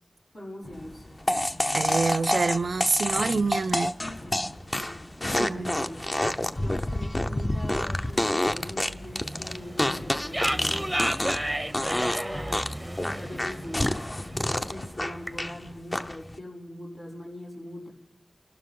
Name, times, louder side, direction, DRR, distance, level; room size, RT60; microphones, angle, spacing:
voice 1, 0.3-1.0 4.1-4.5 4.8-12.7 13.1-17.9, left 1 dB, 85° left, 5.8 m, -42 dB
sound 1, 0.6-15.8, left 1 dB, 65° left, 5.1 m, -45 dB
sound 2, 1.3-11.5 11.7-12.2 12.5-15.5 15.9-16.4, left 1 dB, 35° left, 0.8 m, -28 dB
voice 2, 1.7-3.9 5.4-5.7, right 4 dB, 85° right, 0.4 m, -26 dB
sound 3, 4.6-5.1 5.6-5.7 5.8-6.0 6.3-6.4 6.7-15.5, right 1 dB, 10° right, 0.6 m, -34 dB
29.5 x 12.0 x 3.8 m
wide cardioid pair, 70°, 0 cm